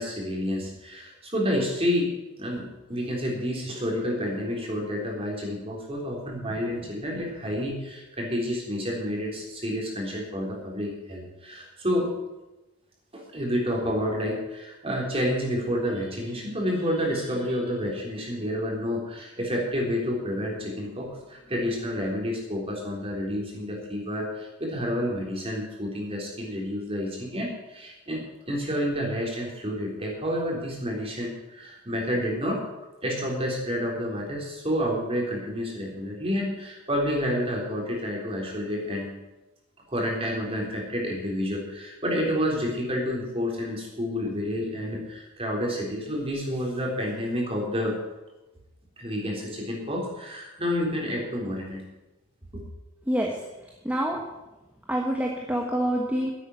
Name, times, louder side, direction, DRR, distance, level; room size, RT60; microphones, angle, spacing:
voice 1, 0.0-12.1 13.1-32.6 33.0-39.1 39.9-48.0 49.0-51.8 52.5-52.6, equal, 25° right, -1 dB, 3.7 m, -29 dB
voice 2, 53.8-54.2 54.9-56.3, equal, 5° right, 0 dB, 1.3 m, -26 dB
11.0 x 8.4 x 9.5 m, 1.0 s
head